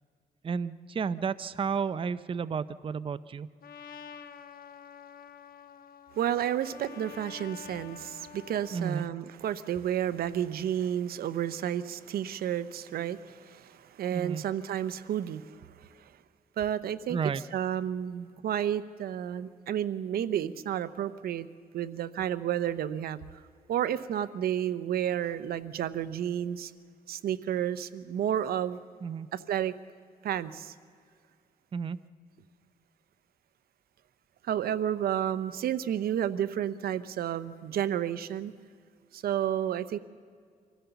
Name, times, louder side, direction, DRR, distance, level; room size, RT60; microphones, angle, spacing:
voice 1, 0.4-3.5 8.7-9.0 14.1-14.4 17.1-17.4 29.0-29.3 31.7-32.0, right 6 dB, 35° right, 14 dB, 0.5 m, -32 dB
Trumpet, 3.6-9.1, left 7 dB, 75° left, 1.1 m, -48 dB
voice 2, 6.2-15.6 16.6-21.5 21.7-23.2 23.7-26.7 27.1-28.8 29.3-29.7 30.2-30.7 34.4-38.5 39.1-40.0, right 10 dB, 85° right, 15 dB, 0.7 m, -31 dB
25.0 x 15.5 x 6.9 m, 2.1 s
cardioid pair, 95°, 15 cm